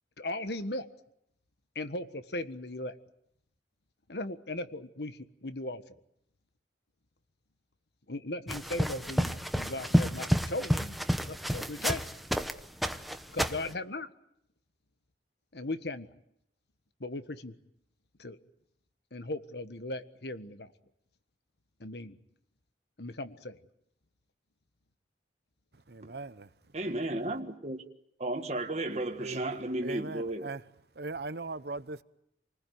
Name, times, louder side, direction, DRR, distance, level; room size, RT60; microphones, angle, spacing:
voice 1, 0.2-0.9 1.7-3.0 4.1-5.9 8.1-11.0 11.2-12.0 13.3-14.1 15.5-16.1 17.0-17.5 18.2-18.4 19.1-20.7 21.8-22.2 23.0-23.6, left 2 dB, 65° left, 1.5 m, -37 dB
sound 1, 8.5-12.5 12.8-13.7, equal, ahead, 1.0 m, -29 dB
voice 2, 25.9-26.5 29.2-29.5 29.8-30.6 30.9-32.0, right 3 dB, 65° right, 1.0 m, -39 dB
voice 3, 26.7-27.8 28.2-30.5, right 1 dB, 40° right, 1.7 m, -33 dB
29.0 x 20.0 x 9.5 m
head